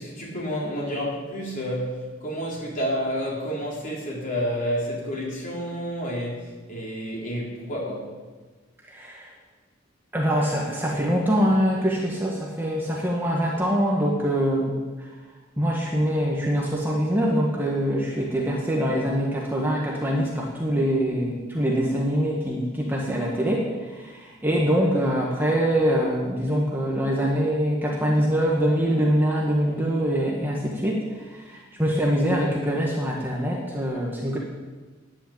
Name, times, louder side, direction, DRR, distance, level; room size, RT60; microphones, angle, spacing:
voice 1, 0.0-8.1, equal, 40° left, -4 dB, 4.1 m, -30 dB
voice 2, 8.9-9.3 10.1-15.1 15.6-34.4, equal, 10° right, -3 dB, 1.6 m, -24 dB
10.5 x 9.2 x 8.7 m, 1.3 s
head